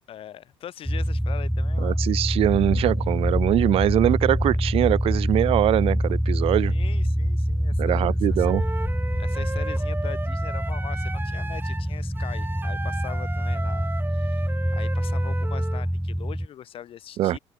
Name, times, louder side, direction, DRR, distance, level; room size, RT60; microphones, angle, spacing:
voice 1, 0.1-2.0 6.7-8.5 9.2-17.4, left 10 dB, 60° left, 5.8 m, -42 dB
sound 1, 0.8-16.5, equal, ahead, 0.4 m, -25 dB
voice 2, 1.8-6.7 7.8-8.6 17.2-17.4, right 13 dB, 65° right, 0.6 m, -22 dB
Accelerating revving vroom, 2.4-9.7, left 5 dB, 30° left, 2.1 m, -36 dB
Wind instrument woodwind instrument, 8.4-15.8, right 3 dB, 20° right, 4.0 m, -36 dB
cardioid pair, 100°, 10 cm